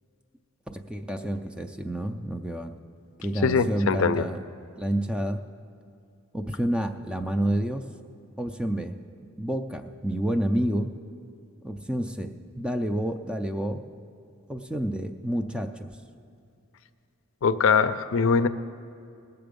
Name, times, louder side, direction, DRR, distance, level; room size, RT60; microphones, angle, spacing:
voice 1, 0.7-2.8 3.2-4.4 4.8-5.4 6.3-7.8 8.4-9.0 9.4-10.9 11.6-13.8 14.5-16.0, right 1 dB, 5° right, 7 dB, 0.4 m, -29 dB
voice 2, 3.4-4.2 17.4-18.5, left 5 dB, 65° left, 12 dB, 0.4 m, -22 dB
19.0 x 6.9 x 5.2 m, 2.5 s
head